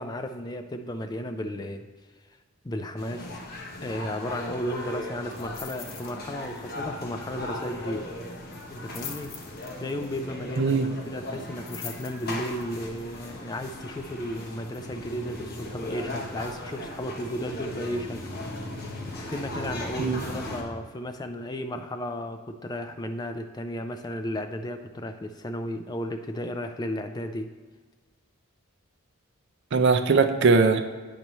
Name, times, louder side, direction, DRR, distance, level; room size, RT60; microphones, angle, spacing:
voice 1, 0.0-1.8 2.6-3.4 3.8-8.1 8.7-9.4 9.8-10.8 11.1-18.2 19.1-27.5, equal, 20° left, 7 dB, 0.3 m, -34 dB
sound 1, 3.0-20.6, left 1 dB, 45° left, 0.9 m, -37 dB
sound 2, 5.3-6.2 6.4-6.7 7.0-7.1 8.6-10.1 11.3-12.6 13.2-13.3, left 8 dB, 65° left, 0.7 m, -42 dB
voice 2, 29.7-30.8, right 4 dB, 55° right, 8 dB, 0.4 m, -20 dB
8.8 x 3.0 x 5.4 m, 1.3 s
head